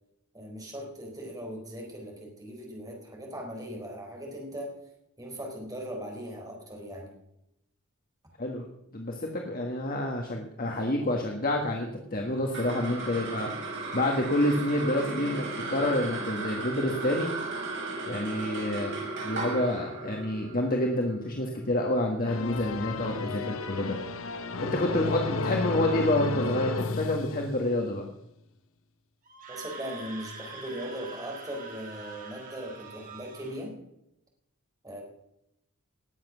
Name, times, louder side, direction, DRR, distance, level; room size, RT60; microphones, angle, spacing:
voice 1, 0.3-4.7 5.2-7.2 29.5-33.8 34.8-35.0, equal, 20° right, 0 dB, 4.0 m, -39 dB
voice 2, 8.4-13.5 13.9-17.3 18.1-18.9 19.2-24.0 24.6-28.0, left 1 dB, 45° left, 1 dB, 1.6 m, -28 dB
sound 1, 12.3-22.9, right 3 dB, 60° right, 5.4 m, -36 dB
sound 2, 22.3-27.9, left 3 dB, 70° left, 1.0 m, -33 dB
Screaming, 29.3-33.6, right 4 dB, 40° right, 2.8 m, -45 dB
19.0 x 7.8 x 6.2 m, 0.82 s
head